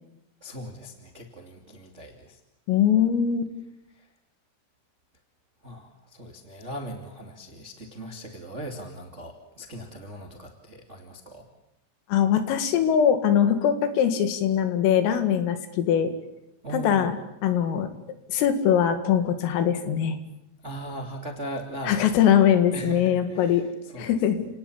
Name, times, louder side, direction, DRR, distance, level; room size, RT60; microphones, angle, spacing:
voice 1, 0.4-2.4 3.9-4.1 5.6-11.5 16.6-17.1 20.6-24.1, right 1 dB, 35° right, 4 dB, 1.1 m, -39 dB
voice 2, 2.7-3.5 12.1-16.1 16.7-17.2 17.4-17.9 18.3-20.2 21.9-23.6 24.0-24.5, left 9 dB, 80° left, 9 dB, 4.6 m, -22 dB
30.0 x 18.5 x 8.6 m, 0.87 s
omnidirectional pair, 5.9 m